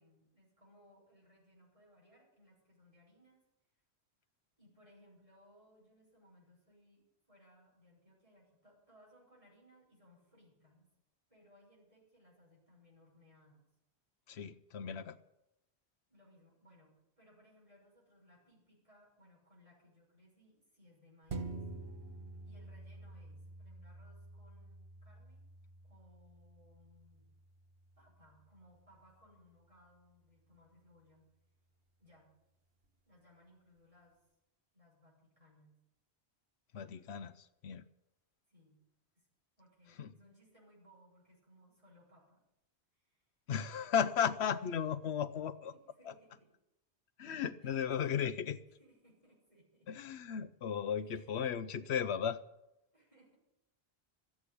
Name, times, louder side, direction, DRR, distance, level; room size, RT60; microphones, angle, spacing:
voice 1, 0.0-3.4 4.6-10.9 11.3-13.6 16.1-21.6 22.4-25.4 25.8-27.3 28.0-31.3 32.0-32.3 33.0-34.2 34.7-35.8 38.5-38.8 39.1-39.3 39.6-42.4 42.9-43.3 45.7-46.5 47.6-47.9 48.7-49.9 51.0-51.4 52.9-53.3, equal, 30° right, -4 dB, 6.6 m, -65 dB
voice 2, 14.3-15.2 36.7-37.9 40.0-40.1 43.5-45.7 46.1-46.2 47.2-48.6 49.9-52.4, left 8 dB, 75° left, 13 dB, 1.0 m, -35 dB
sound 1, 21.3-30.1 30.5-30.6, right 3 dB, 60° right, 1.5 m, -49 dB
13.0 x 8.6 x 9.9 m, 0.89 s
omnidirectional pair, 1.1 m